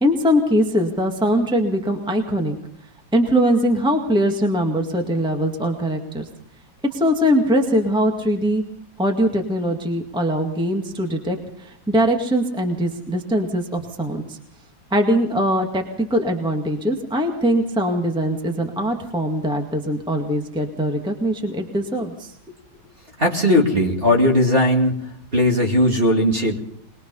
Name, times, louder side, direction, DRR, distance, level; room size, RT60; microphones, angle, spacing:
voice 1, 0.0-2.6 3.1-6.3 6.9-8.6 9.0-14.4 14.9-22.3, equal, ahead, 3 dB, 1.8 m, -21 dB
voice 2, 23.2-25.0 25.3-26.6, left 1 dB, 30° right, 1 dB, 2.6 m, -18 dB
22.0 x 21.5 x 5.5 m, 0.70 s
omnidirectional pair, 2.2 m